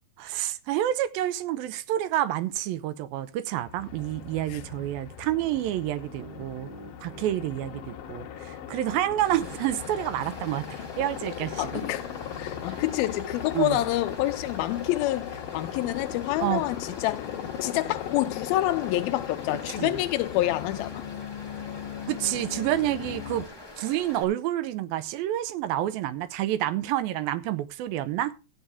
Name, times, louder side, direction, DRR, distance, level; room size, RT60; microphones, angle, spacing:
voice 1, 0.2-6.7 7.0-11.8 13.5-13.8 16.4-16.6 19.8-20.0 22.1-23.5 23.8-28.3, right 13 dB, 85° right, 2.5 m, -28 dB
Aircraft, 3.6-23.5, left 9 dB, 70° left, 2.7 m, -38 dB
sound 1, 6.0-9.1, right 3 dB, 50° right, 1.7 m, -48 dB
Stream, 9.2-24.2, left 1 dB, 40° left, 0.3 m, -45 dB
voice 2, 11.6-12.1 12.4-17.3 17.6-21.0, left 15 dB, 90° left, 2.6 m, -27 dB
14.5 x 8.3 x 3.5 m
omnidirectional pair, 4.2 m